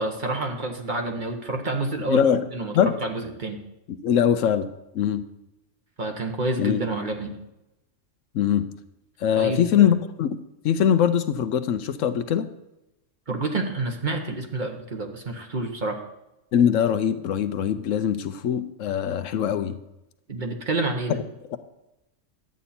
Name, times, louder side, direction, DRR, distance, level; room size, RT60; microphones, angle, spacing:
voice 1, 0.0-3.6 6.0-7.4 9.4-9.9 13.3-16.0 20.3-21.2, right 2 dB, 40° right, 3 dB, 1.2 m, -28 dB
voice 2, 2.1-2.5 2.7-2.9 4.0-4.7 4.9-5.2 6.6-6.8 8.3-8.7 9.2-10.3 10.6-12.5 16.5-19.7 21.5-21.6, left 9 dB, 80° left, 10 dB, 1.0 m, -22 dB
11.0 x 8.3 x 4.3 m, 0.92 s
omnidirectional pair, 1.3 m